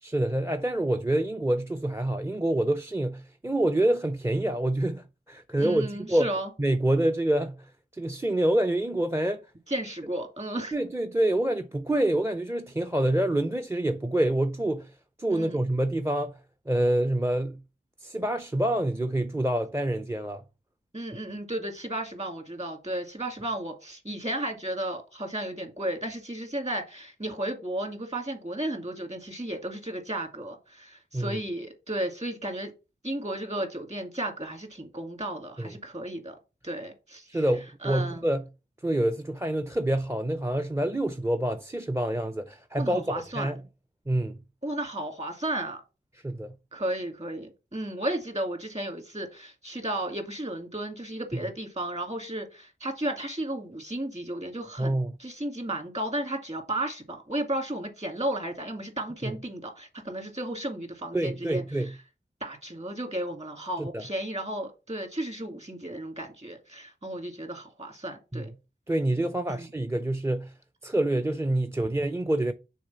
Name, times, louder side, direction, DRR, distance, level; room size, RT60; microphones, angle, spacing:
voice 1, 0.0-6.3 6.6-9.4 10.7-16.3 16.7-17.6 18.0-20.4 31.1-31.4 35.6-35.7 37.3-38.4 38.8-43.0 43.3-43.6 44.1-44.4 46.2-46.6 54.8-55.1 59.2-59.3 61.1-61.9 63.8-64.0 68.3-68.5 68.9-70.5 70.8-72.5, right 1 dB, 15° right, 0.5 m, -27 dB
voice 2, 5.6-6.5 9.7-10.7 15.3-15.6 20.9-32.7 33.0-36.4 36.6-37.4 37.8-38.2 42.8-43.5 44.6-45.8 46.7-61.9 62.4-68.5 69.5-69.7, right 1 dB, 35° right, 2.1 m, -34 dB
6.4 x 3.7 x 5.7 m
wide cardioid pair, 60°, 19 cm